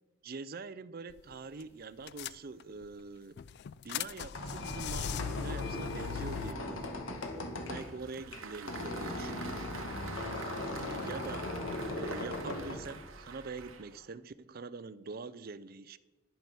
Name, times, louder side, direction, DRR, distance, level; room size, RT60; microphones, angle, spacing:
voice 1, 0.2-3.4 3.8-7.0 7.6-9.7 10.6-11.5 11.9-16.0, right 4 dB, 45° right, 15 dB, 0.5 m, -44 dB
sound 1, 1.1-1.3 1.6-1.7 2.1-2.9 3.4-6.5, left 9 dB, 55° left, 0.3 m, -39 dB
Squeak, 4.0-13.6, left 1 dB, 75° left, 1.7 m, -39 dB
Applause, 7.8-14.1, right 5 dB, 80° right, 1.1 m, -47 dB
10.5 x 10.5 x 5.4 m, 1.1 s
head